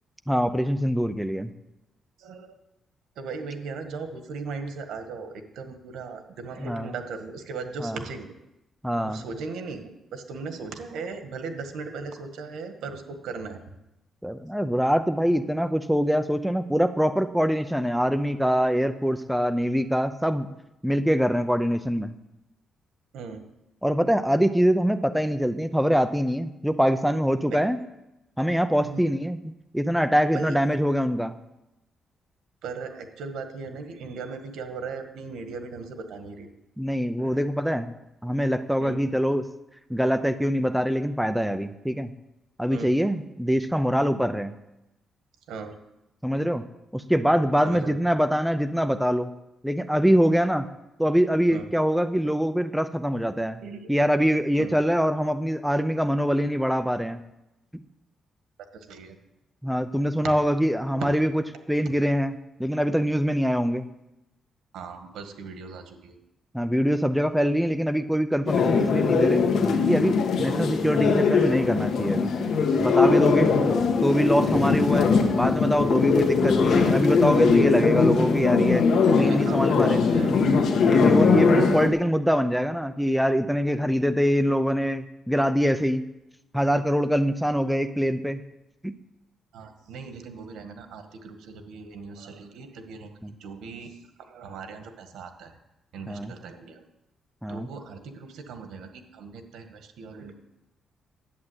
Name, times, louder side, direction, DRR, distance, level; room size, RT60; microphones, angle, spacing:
voice 1, 0.3-1.5 6.6-6.9 7.8-8.0 8.8-9.2 14.2-20.5 20.8-22.2 23.8-27.8 28.4-29.4 29.7-31.3 36.8-37.9 38.2-39.5 39.9-42.1 42.6-44.5 46.2-46.6 46.9-49.3 49.6-50.6 51.0-53.6 53.9-57.2 59.6-61.4 61.7-63.9 66.5-69.5 69.9-72.3 72.8-73.5 74.0-78.8 79.2-80.0 80.8-86.0 86.5-88.4 88.8-89.0 93.2-93.3 96.1-96.3 97.4-97.7, equal, ahead, 10 dB, 0.6 m, -24 dB
voice 2, 2.2-2.6 3.2-8.3 9.0-13.6 23.1-23.4 27.7-27.8 28.8-29.1 30.3-30.5 32.6-36.5 37.2-37.5 38.8-39.0 42.7-42.9 45.5-45.8 47.6-48.0 51.5-51.7 53.6-53.8 54.6-54.7 58.9-59.2 61.0-61.1 64.7-66.2 70.4-70.5 79.3-80.3 89.5-93.1 93.4-95.5 95.9-96.8 97.5-100.3, right 4 dB, 90° right, 7 dB, 1.6 m, -38 dB
sound 1, 68.5-81.9, left 5 dB, 70° left, 1.6 m, -21 dB
11.0 x 8.6 x 8.0 m, 0.92 s
cardioid pair, 135°, 0 cm